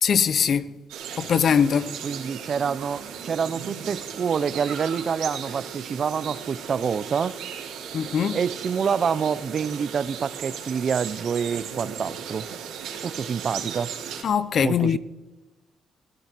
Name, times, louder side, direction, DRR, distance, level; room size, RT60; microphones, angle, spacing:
voice 1, 0.0-0.7 1.2-1.9 7.9-8.4 14.2-15.0, left 7 dB, 55° left, 0.8 m, -21 dB
sound 1, 0.9-14.2, right 8 dB, 90° right, 2.9 m, -36 dB
voice 2, 2.0-7.3 8.3-12.5 13.0-13.9 14.6-15.0, right 6 dB, 50° right, 0.7 m, -27 dB
19.5 x 15.5 x 4.6 m
cardioid pair, 90°, 0 cm